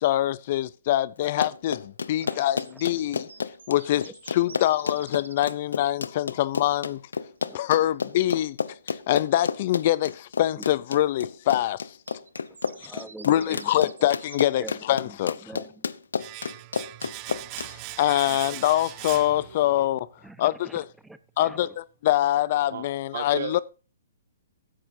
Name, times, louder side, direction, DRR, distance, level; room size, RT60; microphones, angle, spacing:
voice 1, 0.0-3.3 3.7-7.0 7.5-8.6 8.9-11.8 12.8-12.9 13.3-15.4 17.6-20.1 20.4-20.9 21.4-21.7 22.0-23.6, left 13 dB, 50° left, 0.5 m, -24 dB
Run, 1.2-17.7, left 5 dB, 85° left, 0.8 m, -31 dB
sound 1, 2.2-5.5 9.4-9.5 11.9-15.0, right 5 dB, 90° right, 1.0 m, -49 dB
voice 2, 12.7-14.1 14.6-14.8 15.0-15.8 18.3-18.4 20.2-21.7, right 2 dB, 5° right, 0.8 m, -44 dB
Domestic sounds home sounds, 16.2-20.0 20.3-20.4, right 24 dB, 35° right, 0.4 m, -40 dB
voice 3, 19.3-19.9 22.7-22.9 23.1-23.6, right 7 dB, 65° right, 1.8 m, -35 dB
15.0 x 11.5 x 2.7 m
hypercardioid pair, 140°, 0 cm